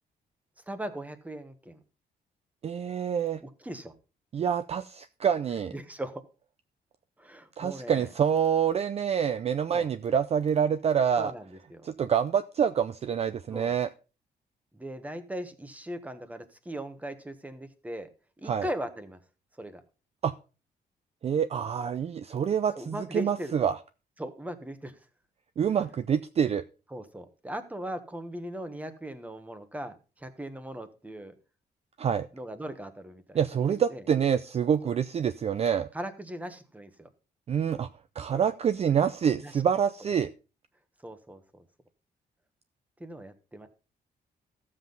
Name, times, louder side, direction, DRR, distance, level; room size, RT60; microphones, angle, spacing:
voice 1, 0.7-1.8 3.4-3.9 5.7-6.2 7.2-8.1 9.7-9.9 11.2-11.9 13.5-13.8 14.7-18.1 18.4-19.2 19.6-19.8 22.7-23.6 24.2-24.9 26.9-31.3 32.3-33.4 33.7-34.0 34.8-34.9 35.9-37.1 38.3-38.5 39.4-39.6 41.0-41.6 43.0-43.7, right 1 dB, 10° right, 10 dB, 1.2 m, -39 dB
voice 2, 2.6-3.4 4.3-5.7 7.6-11.3 11.8-13.9 18.5-18.7 20.2-20.3 21.2-23.8 25.6-26.6 32.0-32.3 33.3-35.9 37.5-37.9 38.2-40.3, right 8 dB, 40° right, 12 dB, 0.4 m, -26 dB
14.0 x 7.5 x 3.9 m, 0.32 s
cardioid pair, 135°, 17 cm